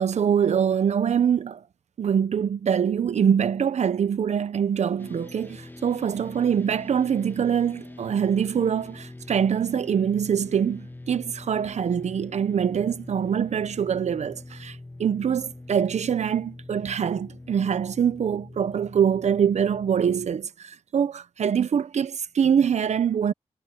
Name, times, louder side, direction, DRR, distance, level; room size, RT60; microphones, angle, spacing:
voice 1, 0.0-1.6 2.0-23.3, right 8 dB, 75° right, 1.0 m, -24 dB
sound 1, 5.0-20.3, left 2 dB, 15° left, 1.6 m, -43 dB
cardioid pair, 55°, 12 cm